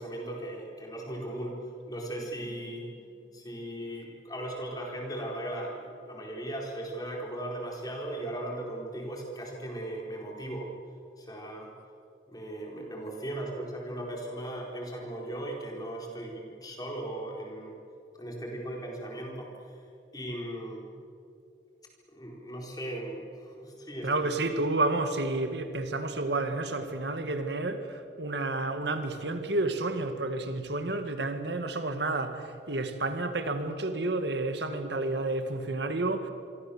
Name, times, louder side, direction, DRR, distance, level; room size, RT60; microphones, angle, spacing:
voice 1, 0.0-1.6 1.9-3.0 3.3-10.7 11.2-11.7 12.3-17.7 18.1-19.8 20.1-20.9 22.1-24.3, right 1 dB, 20° left, 4.5 m, -38 dB
voice 2, 24.0-36.3, right 2 dB, 70° right, 1.8 m, -30 dB
27.5 x 23.5 x 7.2 m
head